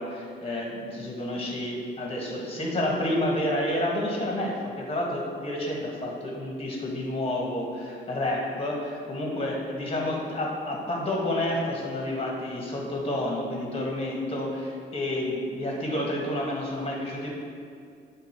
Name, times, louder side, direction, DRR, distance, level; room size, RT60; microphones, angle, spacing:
voice 1, 0.0-17.3, left 1 dB, 30° left, -2 dB, 1.7 m, -30 dB
7.8 x 3.6 x 4.6 m, 2.3 s
cardioid pair, 90°, 20 cm